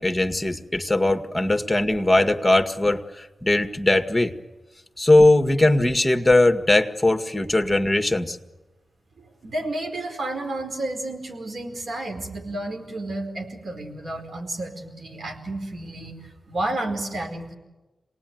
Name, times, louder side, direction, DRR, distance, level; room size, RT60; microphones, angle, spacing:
voice 1, 0.0-4.3 5.0-8.4, left 2 dB, 15° left, 6 dB, 1.9 m, -20 dB
voice 2, 9.2-17.6, right 1 dB, 75° right, 2 dB, 4.7 m, -31 dB
26.5 x 19.5 x 9.4 m, 1.1 s
cardioid pair, 45°, 0 cm